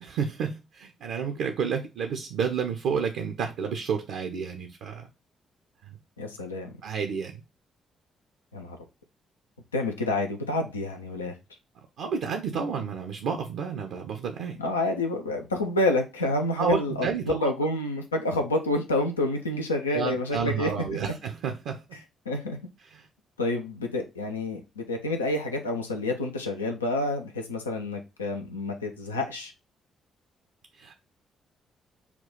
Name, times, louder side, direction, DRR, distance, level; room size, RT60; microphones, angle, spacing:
voice 1, 0.0-5.1 5.8-6.0 6.8-7.4 12.0-14.6 16.6-17.5 19.9-21.8 22.9-23.1 30.7-31.0, right 6 dB, 65° right, 4 dB, 0.6 m, -30 dB
voice 2, 6.2-6.7 8.5-8.8 9.7-11.3 14.6-21.0 22.3-22.6 23.4-29.5, left 2 dB, 85° left, 4 dB, 0.5 m, -28 dB
5.9 x 2.4 x 3.7 m, 0.26 s
figure-of-eight pair, 40°, 0 cm